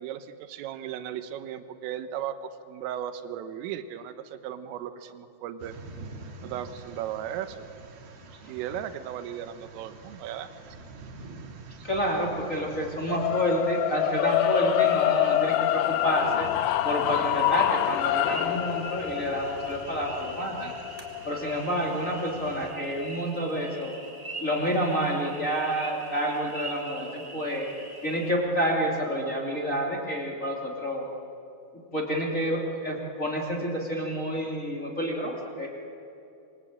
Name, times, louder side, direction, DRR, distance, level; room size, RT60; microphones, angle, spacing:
voice 1, 0.0-5.7 6.4-7.6 8.5-10.5, right 10 dB, 80° right, 10 dB, 3.7 m, -36 dB
sound 1, 5.6-22.7, right 3 dB, 55° right, 3.6 m, -47 dB
voice 2, 11.8-16.5 16.8-20.7 21.2-23.9 24.4-27.7 28.0-31.1 31.9-35.7, equal, 20° left, -1 dB, 2.2 m, -29 dB
sound 2, 13.1-23.3, left 14 dB, 80° left, 3.3 m, -27 dB
sound 3, 14.5-28.3, right 2 dB, 10° right, 2.0 m, -44 dB
26.5 x 24.0 x 8.8 m, 2.7 s
omnidirectional pair, 6.0 m